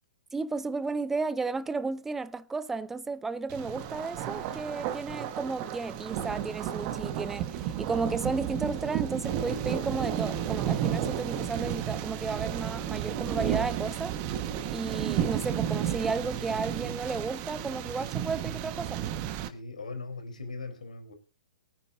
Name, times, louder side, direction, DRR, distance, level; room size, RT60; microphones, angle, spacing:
voice 1, 0.3-14.2 14.7-19.2, right 3 dB, 5° right, 0.5 m, -33 dB
Thunder, 3.5-19.5, right 10 dB, 35° right, 1.4 m, -32 dB
voice 2, 19.4-21.1, left 3 dB, 75° left, 4.0 m, -40 dB
23.5 x 9.7 x 2.7 m
figure-of-eight pair, 120°, 4 cm